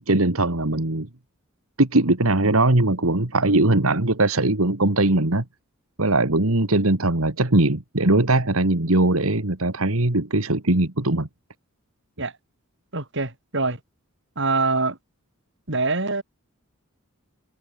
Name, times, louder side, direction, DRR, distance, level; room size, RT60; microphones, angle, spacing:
voice 1, 0.1-1.1 1.8-5.4 6.0-11.3, right 2 dB, 75° right, 2.2 m, -20 dB
voice 2, 12.9-13.8 14.4-15.0 15.7-16.2, right 3 dB, 60° right, 4.9 m, -24 dB
head